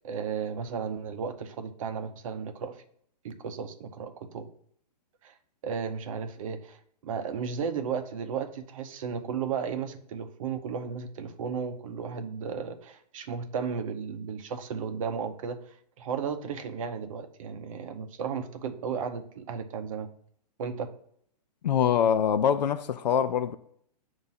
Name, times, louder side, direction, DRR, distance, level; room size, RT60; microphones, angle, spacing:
voice 1, 0.0-2.7 3.2-4.5 5.2-5.3 5.6-15.6 16.0-20.1 20.6-20.9, right 6 dB, 50° right, 0.7 m, -34 dB
voice 2, 21.6-23.6, left 8 dB, 90° left, 0.4 m, -24 dB
6.9 x 2.6 x 5.6 m
hypercardioid pair, 155°, 21 cm